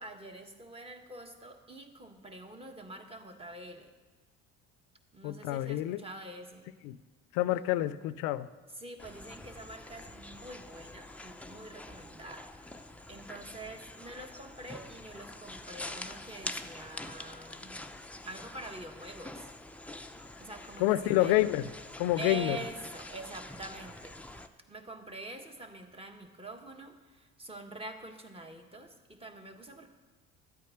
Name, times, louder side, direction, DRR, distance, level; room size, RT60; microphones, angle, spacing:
voice 1, 0.0-3.9 5.1-6.7 8.7-17.8 18.3-19.5 20.4-21.4 22.2-24.2 24.7-29.9, right 2 dB, 15° right, 5 dB, 1.5 m, -45 dB
voice 2, 5.2-6.0 6.8-7.0 7.3-8.5 20.8-21.7 22.0-22.6, left 15 dB, 85° left, 16 dB, 0.6 m, -28 dB
sound 1, 9.0-24.5, left 2 dB, 5° left, 0.6 m, -46 dB
12.5 x 8.6 x 5.8 m, 1.3 s
supercardioid pair, 80°, 33 cm